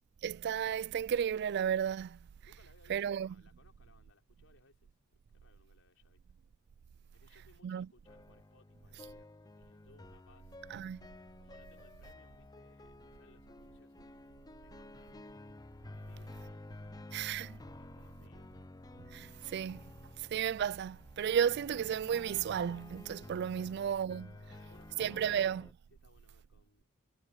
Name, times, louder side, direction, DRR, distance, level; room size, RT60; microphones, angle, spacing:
voice 1, 0.2-2.1 2.9-3.3 7.6-7.9 10.7-11.0 17.1-17.6 19.1-19.8 20.3-24.3 25.0-25.7, right 8 dB, 55° right, 0.3 m, -33 dB
voice 2, 2.4-4.9 5.3-6.2 7.1-10.7 11.4-15.6 15.9-17.4 17.8-18.6 23.6-24.0 24.3-25.3 25.9-26.8, left 2 dB, 70° left, 4.7 m, -67 dB
sound 1, 8.1-25.7, left 2 dB, 20° left, 0.6 m, -52 dB
head